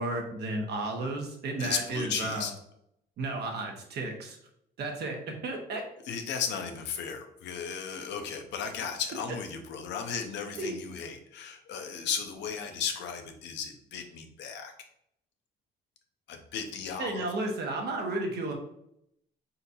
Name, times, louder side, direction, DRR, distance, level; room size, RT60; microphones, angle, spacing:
voice 1, 0.0-2.5 3.2-4.4 4.8-5.8 10.5-10.8 17.0-18.5, right 2 dB, 65° right, 2 dB, 1.2 m, -33 dB
voice 2, 1.6-2.5 6.1-14.7 16.3-17.3, left 7 dB, 75° left, 5 dB, 0.8 m, -35 dB
4.2 x 4.0 x 2.7 m, 0.75 s
supercardioid pair, 80°, 18 cm